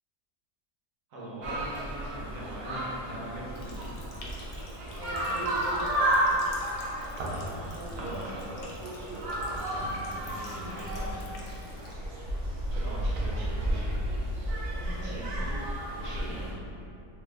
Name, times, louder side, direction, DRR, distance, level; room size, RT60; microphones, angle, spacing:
voice 1, 1.1-4.0 7.3-8.5 9.6-11.3 11.6-12.0 12.7-14.3 14.8-15.6 15.9-16.5, right 1 dB, 60° right, -7 dB, 1.0 m, -42 dB
sound 1, 1.4-16.5, right 1 dB, 90° right, 0.5 m, -32 dB
Water tap faucet, 3.5-11.9, left 2 dB, 80° left, 1.2 m, -51 dB
voice 2, 4.9-6.2 7.7-9.2, right 1 dB, 5° left, -12 dB, 0.4 m, -42 dB
3.4 x 2.0 x 3.2 m, 2.7 s
omnidirectional pair, 1.7 m